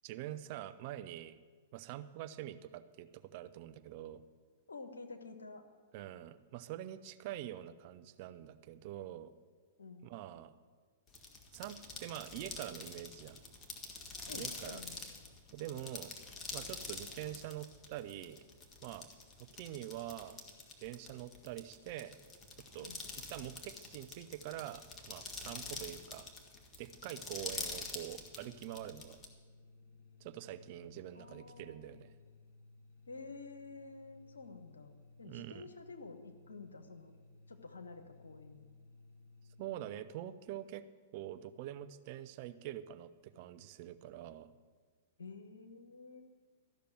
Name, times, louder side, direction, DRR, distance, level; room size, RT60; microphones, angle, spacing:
voice 1, 0.0-1.4 1.7-4.2 5.9-9.3 10.0-10.5 11.5-13.4 14.3-14.8 15.5-16.1 16.5-18.4 18.8-19.1 19.4-20.4 20.8-22.2 22.7-22.9 23.3-26.3 26.8-29.2 30.2-32.1 35.2-35.7 39.6-40.8 41.1-44.5, right 12 dB, 50° right, 12 dB, 0.6 m, -45 dB
voice 2, 4.7-5.6 9.8-10.1 14.3-15.0 22.8-23.0 31.1-32.0 33.1-37.1 37.5-38.7 45.2-46.2, left 4 dB, 80° left, 6 dB, 1.3 m, -50 dB
sound 1, 11.1-29.3, left 3 dB, 20° left, 1.7 m, -46 dB
sound 2, 28.2-40.0, left 3 dB, 60° left, 2.9 m, -60 dB
13.0 x 6.7 x 9.1 m, 1.5 s
figure-of-eight pair, 105°, 0 cm